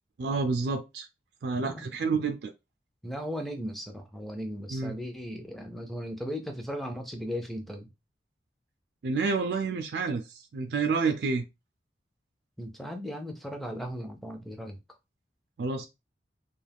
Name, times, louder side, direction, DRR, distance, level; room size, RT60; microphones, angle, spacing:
voice 1, 0.2-1.1 1.4-2.5 4.7-5.0 9.0-11.4 15.6-15.9, right 4 dB, 65° right, 0.3 m, -29 dB
voice 2, 3.0-7.9 12.6-14.8, equal, ahead, 0.4 m, -37 dB
2.4 x 2.3 x 3.3 m
head